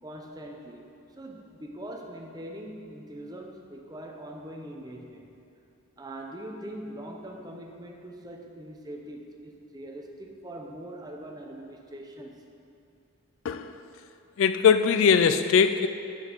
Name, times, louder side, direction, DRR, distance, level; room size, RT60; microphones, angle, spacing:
voice 1, 0.0-5.3 6.0-12.4, right 1 dB, 15° right, 2 dB, 0.6 m, -42 dB
voice 2, 14.4-15.9, left 6 dB, 65° left, 10 dB, 0.3 m, -21 dB
6.4 x 6.1 x 6.9 m, 2.6 s
head